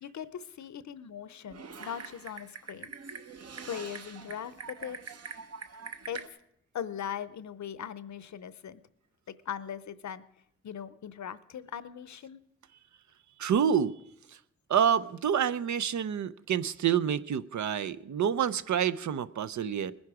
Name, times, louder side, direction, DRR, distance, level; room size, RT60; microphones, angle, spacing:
voice 1, 0.0-2.9 3.6-5.0 6.1-6.2 6.7-8.8 9.3-10.2 10.6-12.4, left 9 dB, 75° left, 16 dB, 0.7 m, -40 dB
Typing, 1.5-6.3, right 5 dB, 60° right, 1.0 m, -44 dB
voice 2, 13.4-13.9 14.7-19.9, right 8 dB, 80° right, 15 dB, 0.6 m, -27 dB
20.5 x 10.5 x 4.9 m, 0.75 s
wide cardioid pair, 120°, 29 cm